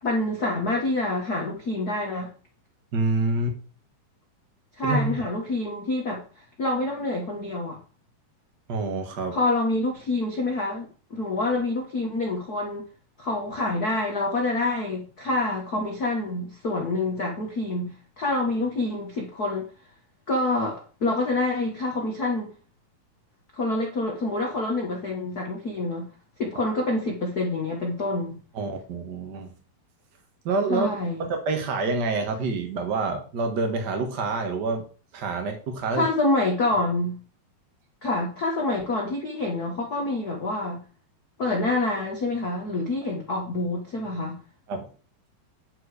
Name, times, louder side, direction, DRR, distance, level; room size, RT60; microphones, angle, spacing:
voice 1, 0.0-2.3 4.8-7.8 9.3-12.9 13.2-19.7 20.3-22.5 23.6-26.1 26.4-28.3 30.7-31.3 35.9-37.2 38.0-40.8 41.4-44.4, left 2 dB, 80° left, 0.8 m, -27 dB
voice 2, 2.9-3.6 4.8-5.1 8.7-9.4 28.5-29.5 30.4-30.9 31.2-34.9 35.1-36.1 44.7-44.9, right 3 dB, 50° right, 1.3 m, -27 dB
10.0 x 4.8 x 4.9 m
omnidirectional pair, 4.1 m